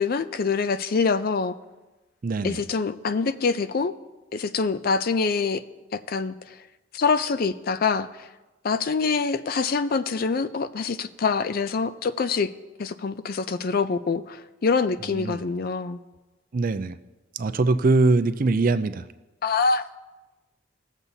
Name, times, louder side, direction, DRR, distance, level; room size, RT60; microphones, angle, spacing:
voice 1, 0.0-1.5 2.4-3.9 4.3-5.6 5.9-6.6 6.9-8.3 8.6-12.5 12.8-16.0 19.4-19.8, left 4 dB, 50° left, 13 dB, 0.4 m, -25 dB
voice 2, 2.2-2.6 15.1-15.4 16.5-17.0 17.3-19.0, right 3 dB, 45° right, 10 dB, 0.4 m, -22 dB
20.0 x 7.2 x 2.7 m, 1.1 s
head